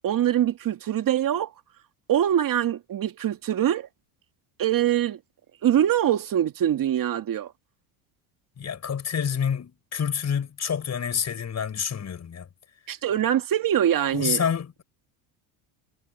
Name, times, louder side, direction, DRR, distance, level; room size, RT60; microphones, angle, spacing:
voice 1, 0.0-1.5 2.1-3.9 4.6-5.2 5.6-7.5 12.9-14.4, right 11 dB, 45° right, 2.5 m, -23 dB
voice 2, 8.6-12.5 14.1-14.8, left 7 dB, 35° left, 5.5 m, -28 dB
supercardioid pair, 95°, 45 cm